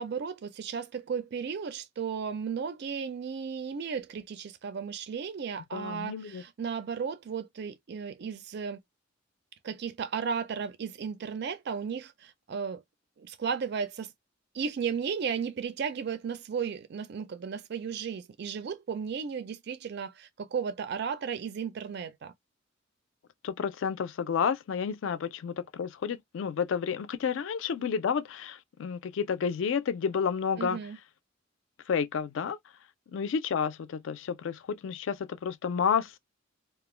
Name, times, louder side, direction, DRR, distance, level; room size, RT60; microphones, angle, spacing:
voice 1, 0.0-8.8 9.6-12.8 13.2-14.1 14.5-22.3 30.6-31.0, right 6 dB, 55° right, 0.4 m, -34 dB
voice 2, 5.7-6.4 23.4-30.8 31.9-32.6 33.1-36.2, left 6 dB, 65° left, 0.3 m, -30 dB
2.4 x 2.1 x 3.0 m
head